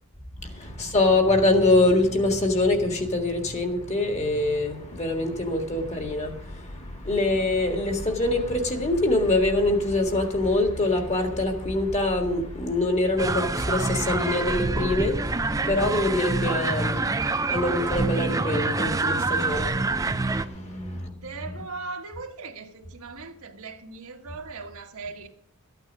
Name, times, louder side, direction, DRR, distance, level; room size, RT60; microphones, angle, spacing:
voice 1, 0.4-21.3, left 2 dB, 30° left, 1.9 m, -24 dB
sound 1, 13.2-20.5, right 3 dB, 15° right, 0.5 m, -26 dB
voice 2, 21.1-25.3, right 3 dB, 75° right, 1.5 m, -39 dB
13.5 x 9.0 x 6.2 m
head